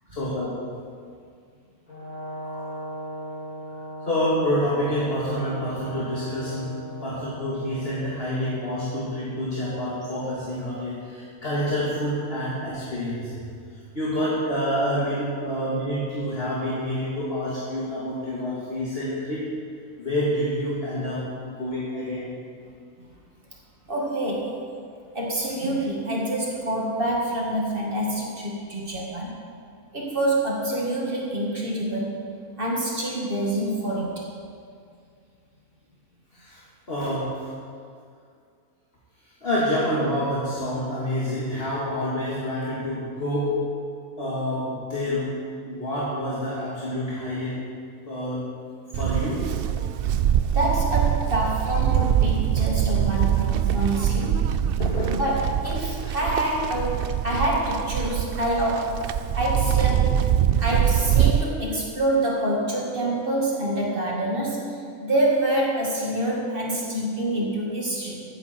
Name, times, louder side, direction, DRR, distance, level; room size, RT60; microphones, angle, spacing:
voice 1, 0.1-0.8 2.4-2.6 4.0-13.7 13.9-19.5 20.0-22.4 36.3-36.6 36.9-37.5 39.4-43.8 44.2-47.6 48.1-48.6 48.9-49.6 50.6-50.7 54.8-55.2 60.7-60.8, equal, 40° left, -8 dB, 2.3 m, -28 dB
Brass instrument, 1.9-8.0, right 1 dB, 70° left, 4.6 m, -37 dB
voice 2, 23.9-24.5 25.1-29.3 29.9-32.2 32.6-34.2 50.5-54.4 55.1-60.1 60.6-64.7 65.0-68.3, right 1 dB, 40° right, -3 dB, 2.4 m, -26 dB
Livestock farm animals working animals, 48.9-61.4, right 10 dB, 90° right, 0.5 m, -23 dB
15.5 x 10.0 x 4.4 m, 2.3 s
omnidirectional pair, 1.5 m